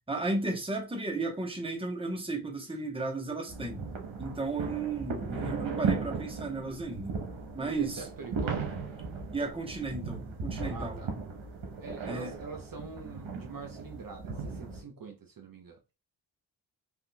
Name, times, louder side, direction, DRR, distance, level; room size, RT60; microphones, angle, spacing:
voice 1, 0.1-3.8 4.2-7.1 7.5-8.0 9.3-11.0 12.0-12.3, right 3 dB, 10° right, 1.1 m, -34 dB
sound 1, 3.5-14.8, right 4 dB, 70° right, 1.0 m, -37 dB
voice 2, 7.6-8.7 10.7-11.1 11.8-15.8, right 4 dB, 45° right, 0.9 m, -44 dB
3.5 x 2.6 x 2.3 m
supercardioid pair, 45°, 47 cm